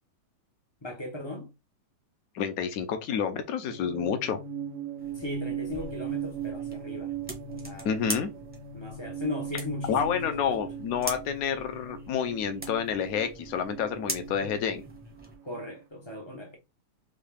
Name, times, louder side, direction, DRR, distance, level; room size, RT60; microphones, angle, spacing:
voice 1, 0.8-1.5 5.1-7.1 7.5-8.1 8.7-10.7 15.4-16.5, left 2 dB, 40° left, 0.3 m, -37 dB
voice 2, 2.3-4.4 7.8-8.3 9.9-14.8, left 7 dB, 65° left, 0.9 m, -29 dB
sound 1, 3.7-15.7, right 8 dB, 90° right, 1.7 m, -39 dB
sound 2, 5.0-15.3, right 1 dB, 10° right, 0.6 m, -42 dB
5.5 x 2.4 x 3.4 m
omnidirectional pair, 2.4 m